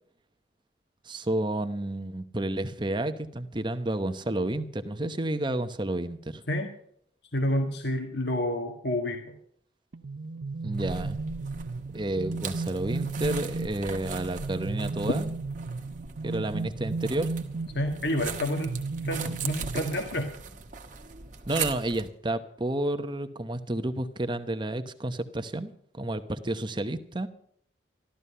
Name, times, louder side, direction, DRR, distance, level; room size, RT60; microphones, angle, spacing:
voice 1, 1.0-6.4 10.6-11.2 11.9-15.3 16.2-17.3 19.2-19.4 21.5-27.3, right 1 dB, 25° right, 10 dB, 0.9 m, -31 dB
voice 2, 7.3-9.3 17.7-18.8 19.0-20.3, left 1 dB, 65° left, 3 dB, 1.8 m, -29 dB
sound 1, 9.9-20.4, right 3 dB, 80° right, 0.7 m, -35 dB
sound 2, 10.7-22.1, right 6 dB, 45° right, 1.4 m, -40 dB
14.5 x 13.0 x 5.6 m, 0.65 s
head